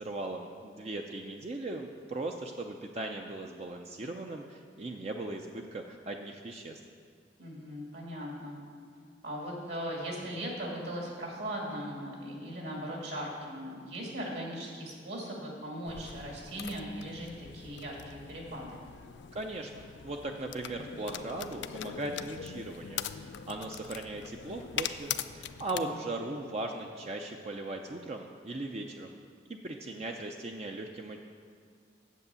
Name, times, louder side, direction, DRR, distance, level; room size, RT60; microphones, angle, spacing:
voice 1, 0.0-6.8 19.3-29.2 29.5-31.2, right 2 dB, 35° right, 2 dB, 0.5 m, -38 dB
voice 2, 7.4-8.6 9.2-18.8 25.7-26.0, equal, 65° right, -2 dB, 2.4 m, -39 dB
sound 1, 15.9-25.8, left 9 dB, 70° left, 0.4 m, -41 dB
8.3 x 7.8 x 6.8 m, 2.2 s
head